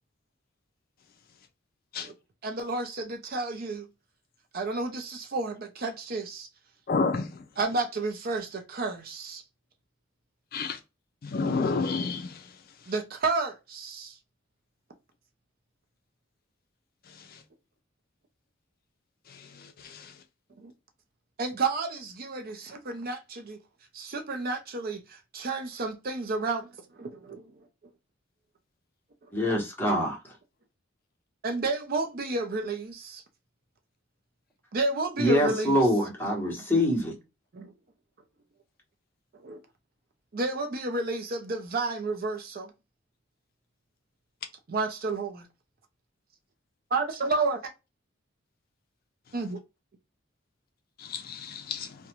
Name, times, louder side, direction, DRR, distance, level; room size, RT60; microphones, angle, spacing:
voice 1, 2.4-3.9 4.5-6.5 7.6-9.4 12.9-14.1 20.6-20.7 21.4-23.6 23.9-26.7 27.0-27.5 31.4-33.2 34.7-35.8 37.5-37.7 39.4-39.6 40.3-42.7 44.7-45.5 46.9-47.7 49.3-49.6, right 3 dB, 50° right, 0.6 m, -31 dB
voice 2, 6.9-7.2 10.5-10.8 11.3-12.2 51.1-51.9, left 4 dB, 50° left, 0.4 m, -28 dB
voice 3, 29.3-30.2 35.2-37.2, equal, 10° left, 1.0 m, -25 dB
2.5 x 2.2 x 2.9 m
head